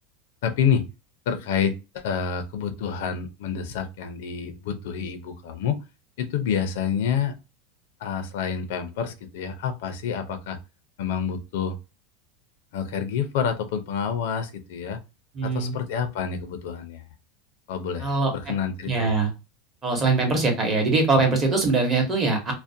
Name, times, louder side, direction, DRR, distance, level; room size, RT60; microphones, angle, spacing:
voice 1, 0.4-0.8 1.3-5.8 6.2-7.3 8.0-10.6 11.0-11.8 12.7-15.0 15.4-17.0 17.7-19.2, left 7 dB, 75° left, 8 dB, 0.5 m, -28 dB
voice 2, 15.3-15.7 18.0-18.3 18.9-19.3 19.8-22.5, right 3 dB, 25° right, 1 dB, 0.8 m, -22 dB
2.4 x 2.1 x 2.6 m, 0.27 s
supercardioid pair, 155°, 0 cm